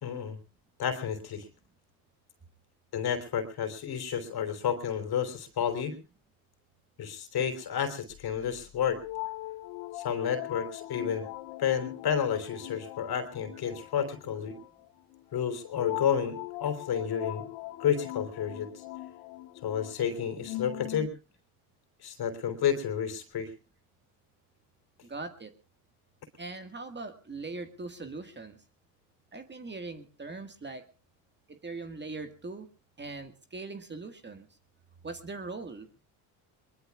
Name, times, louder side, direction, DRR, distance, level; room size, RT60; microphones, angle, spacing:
voice 1, 0.0-0.4 0.8-1.5 2.9-6.0 7.0-9.0 9.9-11.3 11.6-14.6 15.3-17.4 17.8-18.8 19.6-21.1 22.0-23.5, left 8 dB, 55° left, 7 dB, 3.6 m, -31 dB
sound 1, 8.1-21.1, left 18 dB, 75° left, 0.9 m, -41 dB
voice 2, 25.0-25.5 26.4-28.6 29.3-30.8 31.5-32.7 33.0-34.5 35.0-35.9, right 3 dB, 25° right, 8 dB, 1.8 m, -41 dB
22.0 x 22.0 x 2.4 m, 0.33 s
hypercardioid pair, 70°, 46 cm